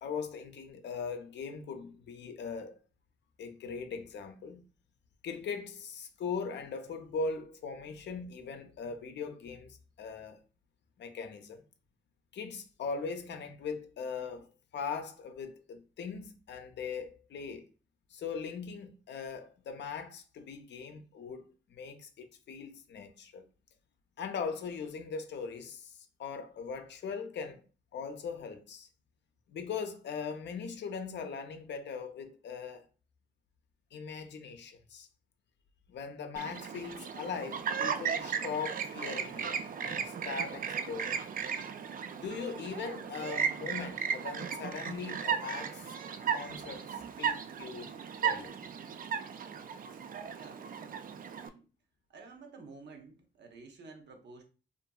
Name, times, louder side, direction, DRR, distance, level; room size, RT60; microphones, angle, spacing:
voice 1, 0.0-2.7 3.4-4.6 5.2-10.4 11.0-11.6 12.3-14.5 14.7-17.7 18.1-23.4 24.2-27.6 27.9-28.9 29.5-32.9 33.9-35.1 35.9-41.3 42.2-45.9 46.3-48.0 48.2-48.5, left 5 dB, 70° left, 0.5 m, -40 dB
Chirp tweet, 36.4-51.5, right 7 dB, 50° right, 0.4 m, -36 dB
voice 2, 50.3-50.6 51.3-51.7 52.1-54.4, right 4 dB, 65° right, 0.7 m, -51 dB
2.7 x 2.5 x 2.3 m
cardioid pair, 60°, 19 cm